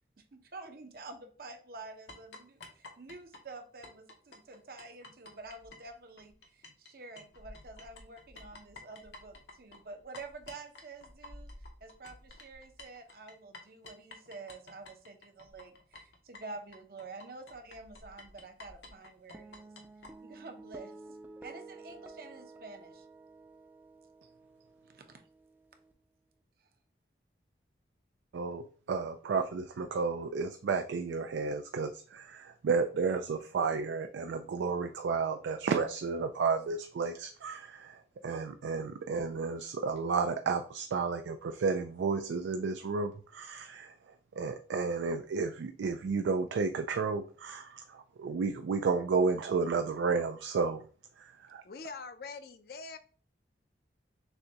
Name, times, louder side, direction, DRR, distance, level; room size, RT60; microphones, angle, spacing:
voice 1, 0.2-11.5 11.8-19.7 20.2-23.1 24.8-25.2, right 3 dB, 55° right, 6 dB, 0.6 m, -48 dB
sound 1, 2.1-6.9 7.2-20.1, left 2 dB, 80° left, 0.9 m, -51 dB
sound 2, 19.3-25.9, right 3 dB, 10° right, 0.3 m, -52 dB
voice 2, 28.3-43.9 44.4-50.8 51.2-51.6, right 4 dB, 90° right, 7 dB, 0.4 m, -32 dB
voice 3, 51.6-53.0, left 4 dB, 55° left, 9 dB, 0.4 m, -43 dB
6.5 x 2.2 x 2.8 m, 0.42 s
head